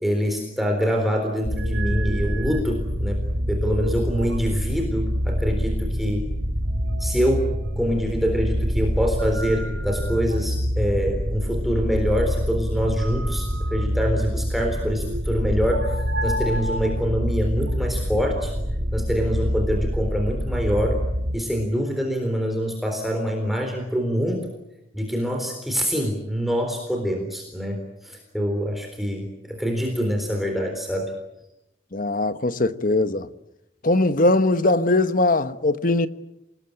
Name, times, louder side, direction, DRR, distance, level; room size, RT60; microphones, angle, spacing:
voice 1, 0.0-3.2 3.5-6.3 7.0-7.5 7.8-18.5 18.9-21.0 21.3-24.5 24.9-31.1, equal, ahead, 3.8 m, -25 dB
sound 1, 1.4-21.4, equal, 75° right, 4.9 m, -26 dB
voice 2, 31.9-33.3 33.8-36.1, left 2 dB, 45° left, 1.2 m, -20 dB
29.0 x 20.5 x 8.8 m
head